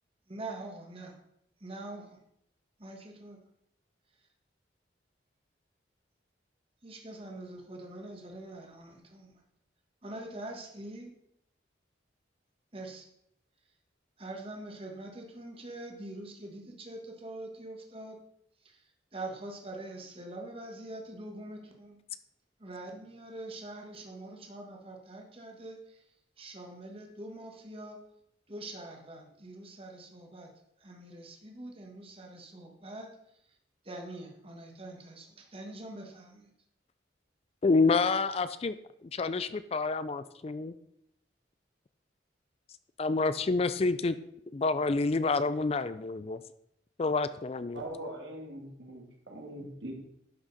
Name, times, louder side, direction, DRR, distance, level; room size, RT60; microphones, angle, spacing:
voice 1, 0.3-1.2 1.6-2.2 2.8-3.4 6.8-9.4 10.0-11.1 12.7-13.1 14.2-18.2 18.6-18.8 19.1-22.0 22.6-26.0 26.4-28.0 28.5-30.5 30.8-33.1 33.8-36.5, right 2 dB, 30° right, 2 dB, 1.6 m, -44 dB
voice 2, 37.6-38.8 39.1-40.8 43.0-44.2 44.5-46.4 47.0-47.8, left 3 dB, 35° left, 13 dB, 0.4 m, -28 dB
voice 3, 47.7-49.9, right 1 dB, 75° right, 1 dB, 2.2 m, -42 dB
11.5 x 6.2 x 4.1 m, 0.75 s
head